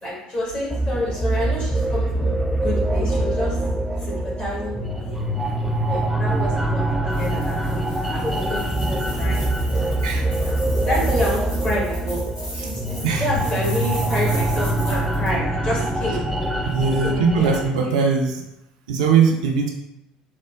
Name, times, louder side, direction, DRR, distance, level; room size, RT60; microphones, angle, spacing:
voice 1, 0.0-2.3 2.6-3.6 4.0-5.2 5.9-9.4 9.7-9.9 10.3-12.2 12.6-16.3 17.0-17.6 17.8-18.0, equal, 30° left, -6 dB, 1.5 m, -28 dB
sound 1, 0.7-17.7, right 1 dB, 5° right, 0.3 m, -24 dB
sound 2, 7.1-15.3, equal, 65° left, 1.1 m, -39 dB
voice 2, 16.6-18.4 18.9-19.7, right 5 dB, 70° right, 1 dB, 0.4 m, -20 dB
3.5 x 2.0 x 2.3 m, 0.90 s
figure-of-eight pair, 60°, 4 cm